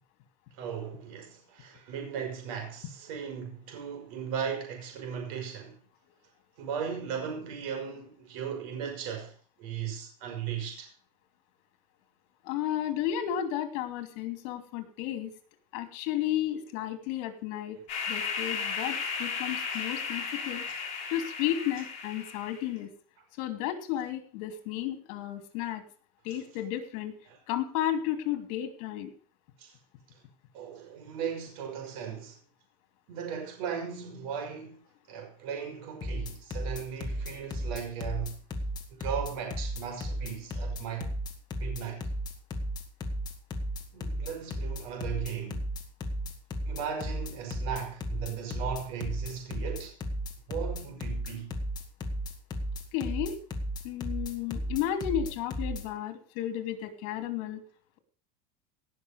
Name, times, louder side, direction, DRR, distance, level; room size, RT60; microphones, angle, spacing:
voice 1, 0.6-5.8 6.6-9.3 9.6-10.9 26.3-26.4 27.3-27.4 29.6-29.7 30.5-32.4 33.1-34.8 35.1-38.4 39.0-41.1 41.6-42.0 43.9-45.6 46.6-50.0 50.5-51.6, right 7 dB, 75° right, 5.2 m, -37 dB
voice 2, 12.4-15.3 15.7-17.8 18.1-20.6 21.1-22.9 23.4-25.8 26.2-27.1 27.5-29.1 52.9-53.4 53.8-57.6, left 11 dB, 70° left, 2.8 m, -33 dB
sound 1, 17.9-22.7, left 5 dB, 40° left, 4.9 m, -35 dB
sound 2, 36.0-55.8, equal, 25° left, 2.1 m, -34 dB
18.0 x 6.4 x 6.5 m
cardioid pair, 165°, 18 cm